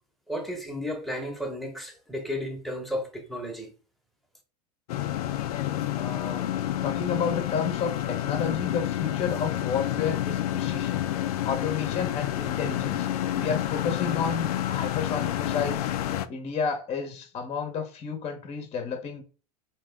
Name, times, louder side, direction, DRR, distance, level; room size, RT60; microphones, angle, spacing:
voice 1, 0.3-3.7, equal, ahead, 1.1 m, -33 dB
sound 1, 4.9-16.3, left 12 dB, 75° left, 0.5 m, -29 dB
voice 2, 5.9-6.4 6.8-11.1 11.4-13.1 13.3-15.9 16.3-19.2, left 6 dB, 35° left, 0.9 m, -31 dB
3.6 x 3.0 x 3.4 m
hypercardioid pair, 100°, 19 cm